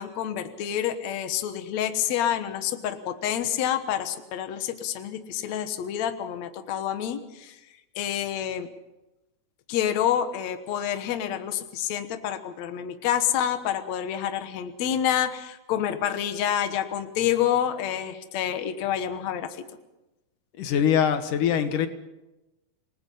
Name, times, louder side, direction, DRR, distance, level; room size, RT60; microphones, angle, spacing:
voice 1, 0.0-7.6 8.0-8.7 9.7-19.7, left 10 dB, 65° left, 9 dB, 2.4 m, -28 dB
voice 2, 20.6-21.9, left 8 dB, 85° left, 9 dB, 2.8 m, -23 dB
27.5 x 19.0 x 5.5 m, 0.98 s
omnidirectional pair, 3.5 m